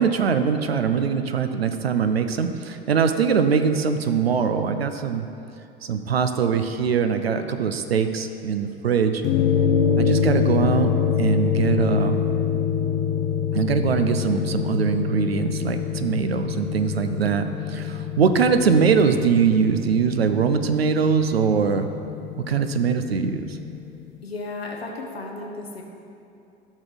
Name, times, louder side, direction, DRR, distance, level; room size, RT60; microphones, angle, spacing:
voice 1, 0.0-5.3 5.8-9.2 10.0-10.9 11.2-12.2 13.5-21.9 22.4-23.6, right 6 dB, 85° right, 8 dB, 0.6 m, -22 dB
sound 1, 9.2-23.8, left 8 dB, 40° left, 0.8 m, -25 dB
voice 2, 24.2-25.8, left 2 dB, 90° left, 0 dB, 0.9 m, -34 dB
12.5 x 6.2 x 4.1 m, 2.8 s
figure-of-eight pair, 70°, 30 cm